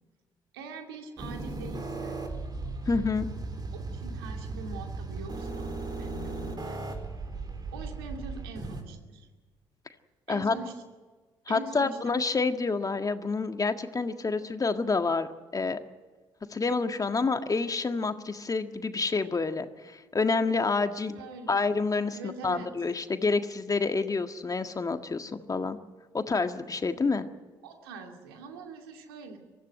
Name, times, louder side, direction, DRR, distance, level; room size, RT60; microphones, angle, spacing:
voice 1, 0.5-2.2 3.8-6.8 7.7-9.3 10.3-10.7 11.5-12.0 20.8-21.7 22.1-22.7 27.6-29.4, right 3 dB, 85° right, 3 dB, 2.6 m, -43 dB
sound 1, 1.2-8.8, right 3 dB, 35° right, 4.4 m, -36 dB
voice 2, 2.9-3.3 10.3-10.5 11.5-15.3 15.5-15.8 16.5-21.2 21.5-25.8 26.1-27.3, left 4 dB, 30° left, 8 dB, 1.7 m, -28 dB
23.5 x 14.5 x 9.9 m, 1.4 s
hypercardioid pair, 50°, 12 cm